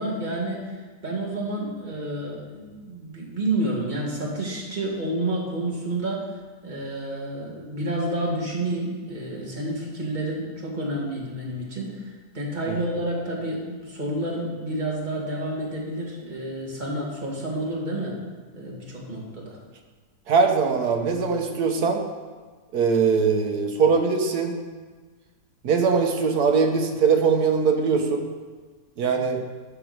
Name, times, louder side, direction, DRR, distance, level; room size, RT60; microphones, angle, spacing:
voice 1, 0.0-6.3 6.6-18.2 18.5-19.6, right 1 dB, 25° right, -3 dB, 1.9 m, -29 dB
voice 2, 20.3-22.0 22.7-24.6 25.6-28.3 29.0-29.4, right 5 dB, 70° right, 4 dB, 1.5 m, -21 dB
8.3 x 6.1 x 6.6 m, 1.4 s
omnidirectional pair, 1.8 m